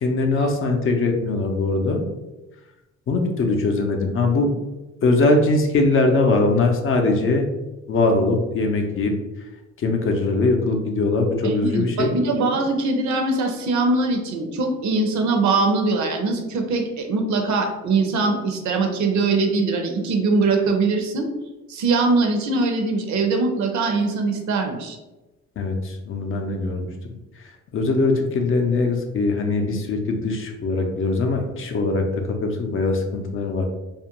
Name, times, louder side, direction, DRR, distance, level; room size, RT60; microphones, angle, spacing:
voice 1, 0.0-2.0 3.1-4.5 5.0-7.4 7.9-9.1 9.8-12.1 25.6-26.9 27.4-33.7, left 3 dB, 45° left, 3 dB, 0.5 m, -21 dB
voice 2, 11.4-21.3 21.7-25.0, right 3 dB, 70° right, 4 dB, 0.6 m, -22 dB
2.3 x 2.2 x 2.9 m, 1.1 s
cardioid pair, 90°, 30 cm